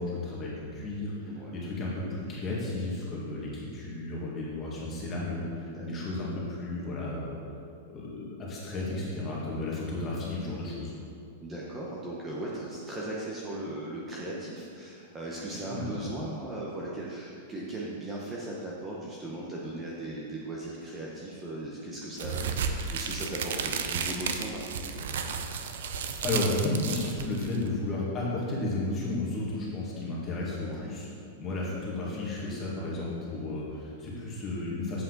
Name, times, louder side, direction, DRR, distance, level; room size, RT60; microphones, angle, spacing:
voice 1, 0.0-7.4 7.9-10.9 15.7-16.0 26.2-31.1 31.4-35.0, left 2 dB, 20° left, -5 dB, 1.9 m, -33 dB
voice 2, 11.4-25.0 30.6-30.9, right 1 dB, 15° right, -5 dB, 0.8 m, -38 dB
sound 1, 22.2-27.7, right 6 dB, 75° right, 0.6 m, -33 dB
7.9 x 7.2 x 4.0 m, 2.4 s
supercardioid pair, 165°, 0 cm